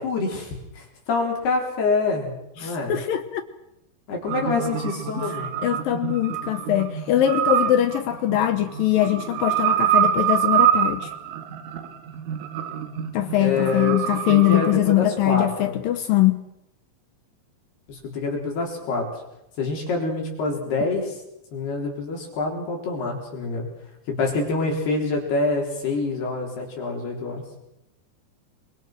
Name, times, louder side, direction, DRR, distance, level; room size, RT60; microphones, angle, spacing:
voice 1, 0.0-3.0 4.1-5.5 13.3-15.8 17.9-19.2 19.6-21.2 21.5-23.7 24.2-27.4, left 3 dB, 60° left, 5.8 m, -26 dB
voice 2, 2.6-3.4 5.2-5.3 5.6-11.1 13.1-16.5, left 13 dB, 80° left, 2.0 m, -22 dB
sound 1, 4.3-14.7, right 10 dB, 90° right, 4.2 m, -25 dB
27.0 x 25.0 x 6.0 m
omnidirectional pair, 5.4 m